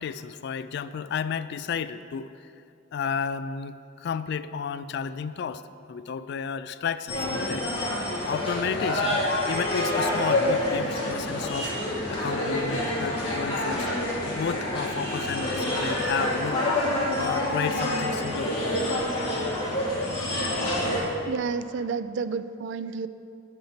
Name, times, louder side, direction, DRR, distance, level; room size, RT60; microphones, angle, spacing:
voice 1, 0.0-2.3 2.9-5.6 5.9-11.7 12.1-16.6 17.2-18.5, left 6 dB, 55° left, 13 dB, 0.3 m, -32 dB
sound 1, 7.1-21.0, left 1 dB, 30° left, 2.2 m, -27 dB
voice 2, 21.3-23.1, right 5 dB, 65° right, 13 dB, 0.3 m, -30 dB
8.9 x 5.6 x 5.8 m, 2.5 s
head